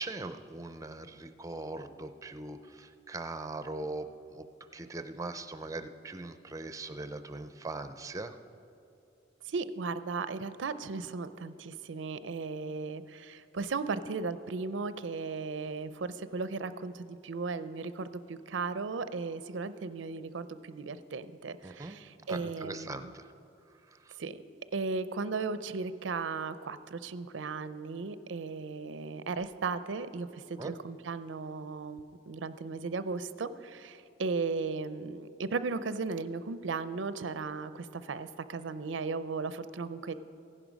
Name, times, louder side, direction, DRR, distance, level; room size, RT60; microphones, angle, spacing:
voice 1, 0.0-4.1 4.3-4.4 4.7-8.3 21.6-22.0 22.3-23.3 24.1-24.2 30.6-30.7, right 2 dB, 20° right, 9 dB, 0.5 m, -40 dB
voice 2, 9.5-23.1 24.2-24.4 24.7-40.1, right 4 dB, 90° right, 13 dB, 0.5 m, -36 dB
15.5 x 11.0 x 5.2 m, 2.6 s
head